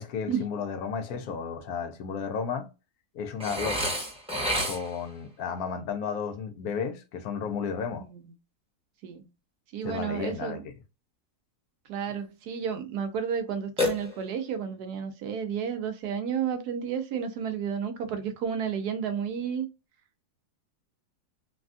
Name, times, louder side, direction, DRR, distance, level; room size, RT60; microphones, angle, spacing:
voice 1, 0.0-2.7 3.1-3.8 4.7-8.0 9.8-10.6, left 6 dB, 70° left, 1.0 m, -33 dB
Burping eructation, 3.4-5.1 13.8-14.6, left 1 dB, 5° right, 0.8 m, -30 dB
voice 2, 9.7-10.6 11.9-19.7, right 7 dB, 80° right, 1.1 m, -31 dB
3.3 x 2.2 x 2.5 m
omnidirectional pair, 1.7 m